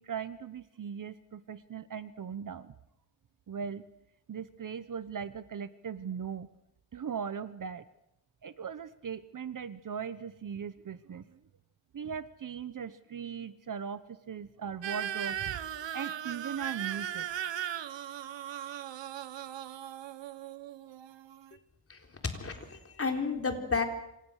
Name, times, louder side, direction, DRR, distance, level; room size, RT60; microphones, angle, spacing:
voice 1, 0.0-2.7 3.5-3.8 4.3-6.5 6.9-7.8 8.4-11.4 11.9-17.3, right 7 dB, 45° right, 13 dB, 1.0 m, -39 dB
sound 1, 14.8-21.5, right 10 dB, 70° right, 1.3 m, -38 dB
voice 2, 22.4-23.8, left 4 dB, 30° left, 4 dB, 3.8 m, -32 dB
27.0 x 26.5 x 6.5 m, 0.87 s
wide cardioid pair, 145°, 46 cm